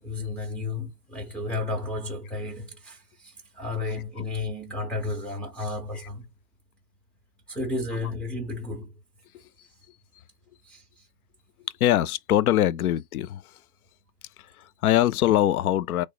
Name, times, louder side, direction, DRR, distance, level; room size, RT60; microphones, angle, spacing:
voice 1, 0.0-6.3 7.5-8.9 10.6-10.8, left 2 dB, ahead, 0.5 m, -32 dB
voice 2, 11.8-13.6 14.4-16.0, left 12 dB, 65° left, 0.5 m, -23 dB
3.1 x 2.1 x 4.2 m
hypercardioid pair, 120°, 48 cm